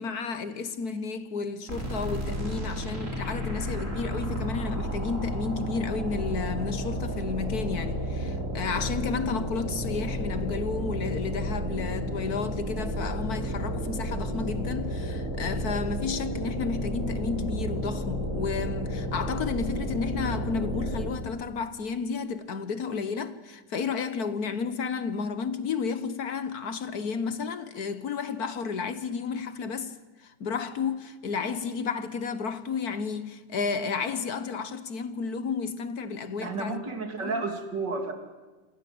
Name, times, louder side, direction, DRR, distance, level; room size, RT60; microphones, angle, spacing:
voice 1, 0.0-29.9 30.2-36.8 37.2-37.4, left 5 dB, 60° left, 1.6 m, -32 dB
sound 1, 1.7-21.3, equal, 40° right, 4.8 m, -32 dB
voice 2, 36.4-38.1, right 3 dB, 70° right, 3.5 m, -31 dB
27.5 x 27.0 x 7.9 m
omnidirectional pair, 1.9 m